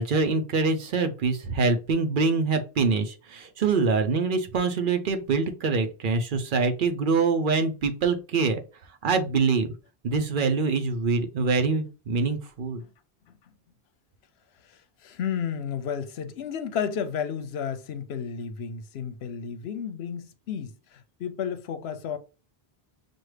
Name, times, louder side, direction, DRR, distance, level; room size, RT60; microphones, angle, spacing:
voice 1, 0.0-8.6 9.0-9.7 10.0-12.8, right 4 dB, 60° right, 0.7 m, -24 dB
voice 2, 14.6-22.2, left 7 dB, 85° left, 0.8 m, -32 dB
6.0 x 2.3 x 3.2 m
omnidirectional pair, 1.0 m